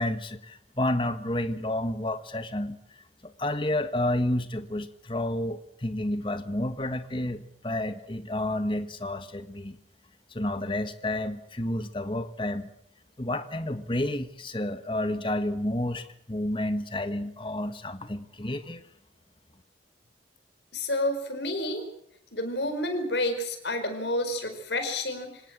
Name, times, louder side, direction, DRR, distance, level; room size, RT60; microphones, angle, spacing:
voice 1, 0.0-9.8 10.3-12.7 13.2-18.8, left 1 dB, 25° left, 10 dB, 1.5 m, -30 dB
voice 2, 20.7-21.8 22.3-25.4, left 1 dB, 75° left, 7 dB, 4.9 m, -29 dB
26.0 x 18.0 x 7.6 m, 0.71 s
head